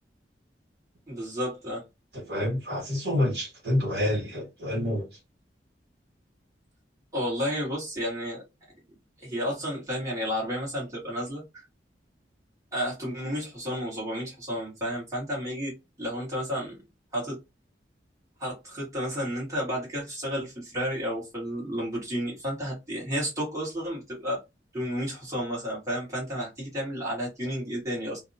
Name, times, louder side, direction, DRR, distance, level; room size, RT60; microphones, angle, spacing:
voice 1, 1.1-1.8 7.1-8.4 9.2-11.6 12.7-16.8 17.1-17.4 18.4-24.4 24.7-28.2, equal, 15° right, 1.3 m, -32 dB
voice 2, 2.1-5.0, left 1 dB, 60° right, 1.4 m, -28 dB
2.6 x 2.2 x 2.6 m
head